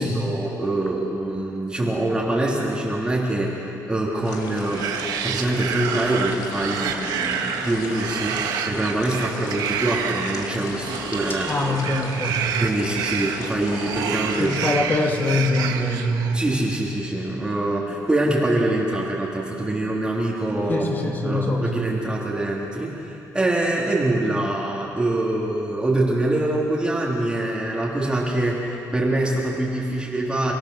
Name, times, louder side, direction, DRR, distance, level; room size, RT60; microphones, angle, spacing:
voice 1, 0.0-11.5 12.6-14.5 16.3-20.9 21.2-30.5, right 1 dB, 15° right, -4 dB, 2.6 m, -24 dB
sound 1, 4.2-14.8, left 4 dB, 75° left, 2.5 m, -36 dB
sound 2, 4.5-16.6, right 7 dB, 90° right, 1.5 m, -29 dB
voice 2, 11.5-12.6 14.4-16.4 20.7-21.9, left 1 dB, 30° left, 1 dB, 2.8 m, -24 dB
30.0 x 17.5 x 6.5 m, 2.9 s
cardioid pair, 130°, 7 cm